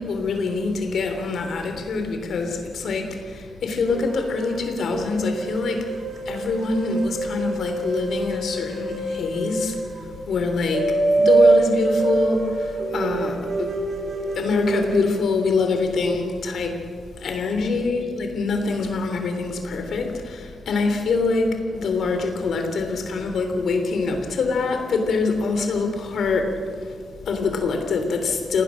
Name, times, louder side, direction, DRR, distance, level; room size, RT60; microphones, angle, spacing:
voice 1, 0.0-28.6, left 4 dB, 65° left, 3.3 m, -25 dB
sound 1, 3.9-15.2, right 3 dB, 50° right, 3.0 m, -25 dB
28.5 x 19.0 x 6.3 m
wide cardioid pair, 175°, 0 cm